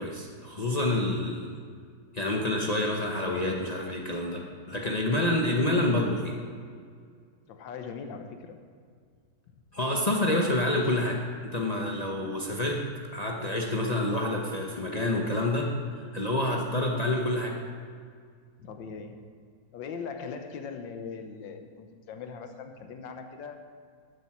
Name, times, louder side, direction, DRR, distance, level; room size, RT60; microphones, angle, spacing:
voice 1, 0.0-1.6 2.1-6.4 9.7-12.9 13.1-15.7 16.1-17.6, left 1 dB, 50° left, -1 dB, 0.5 m, -28 dB
voice 2, 7.5-8.6 18.6-19.2 19.7-23.7, left 5 dB, 70° left, 6 dB, 1.5 m, -40 dB
11.0 x 7.4 x 5.9 m, 2.1 s
omnidirectional pair, 2.2 m